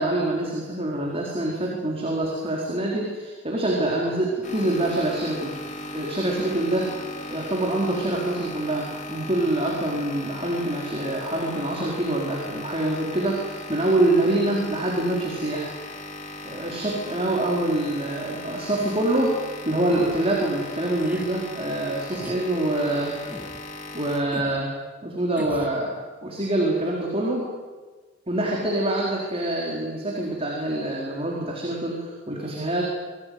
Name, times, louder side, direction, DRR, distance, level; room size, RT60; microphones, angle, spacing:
voice 1, 0.0-5.5 5.9-15.8 16.4-19.4 19.6-23.2 23.9-24.7 25.0-25.9 26.2-27.5 28.3-32.8, right 1 dB, 30° right, -2 dB, 4.4 m, -25 dB
sound 1, 4.4-24.2, left 2 dB, 40° left, 4.2 m, -38 dB
sound 2, 19.8-20.2 21.0-21.3 22.1-22.4 23.3-23.6 24.3-24.6 25.4-25.8, equal, 10° right, 2.1 m, -40 dB
26.0 x 19.5 x 9.7 m, 1.3 s
head